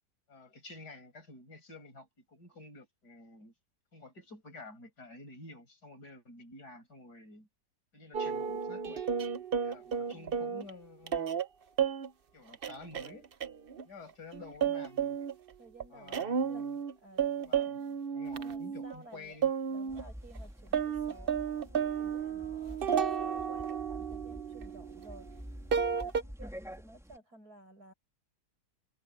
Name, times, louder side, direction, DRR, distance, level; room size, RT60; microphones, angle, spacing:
voice 1, 0.3-3.5 3.9-7.5 7.9-9.0 9.6-11.4 12.3-13.3 13.8-15.2 15.9-16.8 17.5-17.8 18.1-19.5, left 2 dB, 70° left, 6.6 m, -50 dB
sound 1, 8.1-10.7 11.1-11.5 11.8-12.1 12.5-13.8 14.1-15.5 15.8-16.9 17.2-19.2 19.4-20.0 20.4-20.5 20.7-25.4 25.7-26.2, right 7 dB, 45° right, 0.8 m, -32 dB
voice 2, 9.8-10.4 15.6-18.0 18.4-19.4 19.7-25.4 25.7-27.9, right 2 dB, 60° right, 7.4 m, -55 dB
sound 2, 19.9-27.2, equal, ahead, 3.0 m, -48 dB
omnidirectional pair, 1.8 m